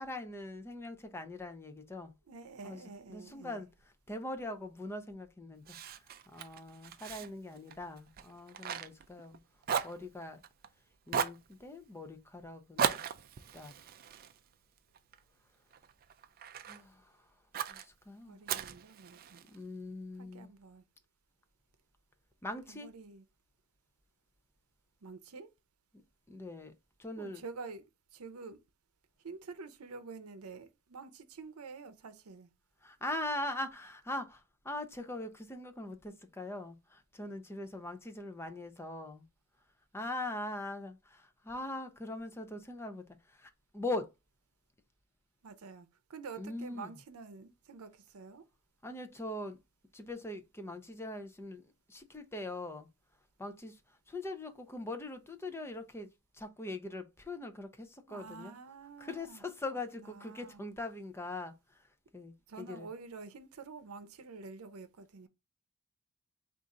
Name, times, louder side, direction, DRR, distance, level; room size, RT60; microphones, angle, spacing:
voice 1, 0.0-2.1 2.6-3.7 4.1-5.8 6.3-9.4 9.8-10.4 11.1-13.0 13.5-13.7 16.7-17.1 17.7-18.4 19.5-20.5 22.4-22.9 26.3-26.7 27.0-27.4 32.8-39.3 39.9-44.1 46.4-46.9 48.8-49.6 49.9-51.6 51.9-52.9 53.4-53.8 54.1-56.1 56.3-58.5 59.0-61.5 62.1-62.9, left 2 dB, 10° left, 0.5 m, -41 dB
voice 2, 2.3-3.6 7.2-7.3 18.2-19.4 20.2-20.8 22.7-23.2 25.0-25.5 27.2-27.8 28.1-28.6 29.2-32.5 45.4-48.5 58.1-59.4 60.0-60.6 62.5-65.3, right 4 dB, 85° right, 0.6 m, -48 dB
Fire, 5.7-9.4 9.6-10.7 11.1-11.5 12.8-15.2 15.7-16.8 17.5-17.9 18.5-19.6, right 7 dB, 45° right, 0.4 m, -37 dB
4.2 x 2.5 x 3.7 m
head